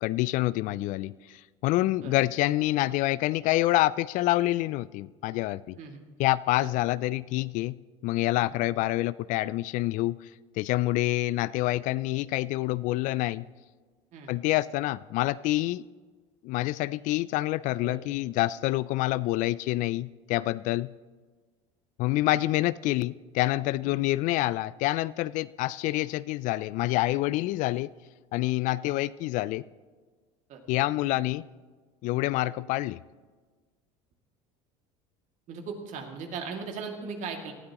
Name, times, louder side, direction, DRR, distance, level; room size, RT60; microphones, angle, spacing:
voice 1, 0.0-5.8 6.2-7.8 8.0-10.2 10.6-13.5 14.3-15.8 16.4-20.9 22.0-27.9 28.3-29.6 30.7-31.4 32.0-33.0, left 17 dB, 60° left, 19 dB, 0.4 m, -27 dB
voice 2, 35.5-37.5, right 5 dB, 55° right, 3 dB, 2.3 m, -38 dB
18.5 x 13.0 x 3.0 m, 1.4 s
supercardioid pair, 90°, 15 cm